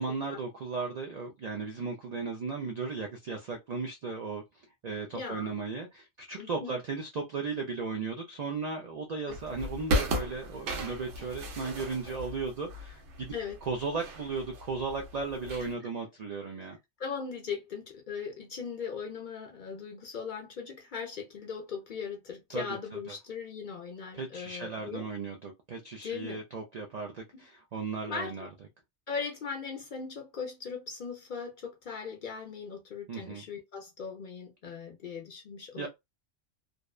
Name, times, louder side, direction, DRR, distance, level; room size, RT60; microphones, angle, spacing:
voice 1, 0.0-4.4 4.8-13.3 13.6-16.8 22.5-22.6 23.1-23.2 24.1-28.5 33.1-33.4 35.8-35.9, right 4 dB, 65° right, 0.4 m, -36 dB
voice 2, 5.1-5.5 6.4-6.7 9.3-9.4 13.3-13.6 16.6-16.7 17.0-25.1 26.0-26.4 28.1-28.5 29.1-35.9, left 6 dB, 55° left, 0.6 m, -39 dB
sound 1, 9.3-15.7, equal, 90° right, 1.1 m, -36 dB
2.6 x 2.1 x 2.3 m
omnidirectional pair, 1.2 m